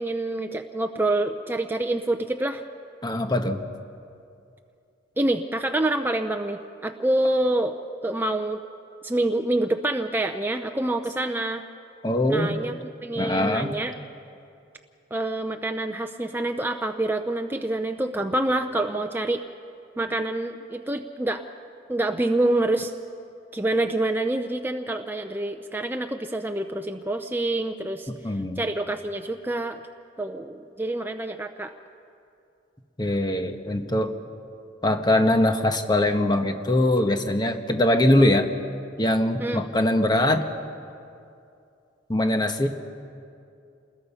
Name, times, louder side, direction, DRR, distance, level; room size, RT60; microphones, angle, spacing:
voice 1, 0.0-2.6 5.2-7.8 8.0-8.6 9.0-11.6 12.3-12.7 13.0-13.9 15.1-19.4 20.0-21.4 21.9-22.9 23.5-28.1 28.6-29.8 30.2-31.7 39.4-39.6, right 1 dB, 10° right, 5 dB, 0.6 m, -26 dB
voice 2, 3.0-3.6 12.0-12.6 13.1-13.8 28.2-28.6 33.0-34.1 34.8-38.5 39.0-40.4 42.1-42.7, left 1 dB, 25° left, 5 dB, 1.3 m, -22 dB
28.0 x 20.5 x 5.6 m, 2.5 s
head